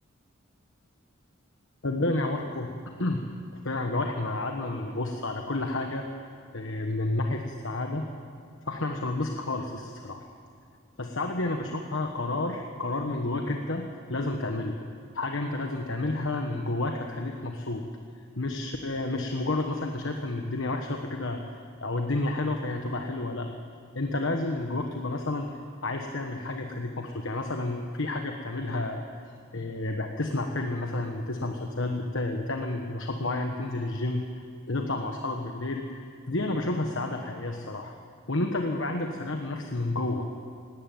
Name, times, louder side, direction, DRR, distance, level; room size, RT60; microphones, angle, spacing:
voice 1, 1.8-2.7 3.0-3.2 3.5-6.0 6.5-8.1 8.7-10.2 11.0-14.7 15.1-17.8 18.4-23.5 23.9-29.2 29.5-37.9 38.3-40.3, left 2 dB, 65° left, 3 dB, 1.3 m, -30 dB
18.0 x 18.0 x 9.1 m, 2.3 s
head